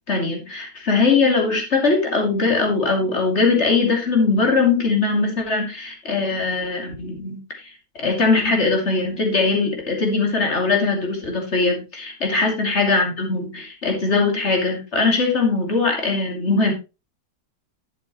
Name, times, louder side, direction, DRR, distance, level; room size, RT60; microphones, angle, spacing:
voice 1, 0.1-7.4 8.0-16.7, left 3 dB, 35° left, 2 dB, 2.9 m, -20 dB
11.5 x 8.2 x 3.1 m, 0.28 s
omnidirectional pair, 2.2 m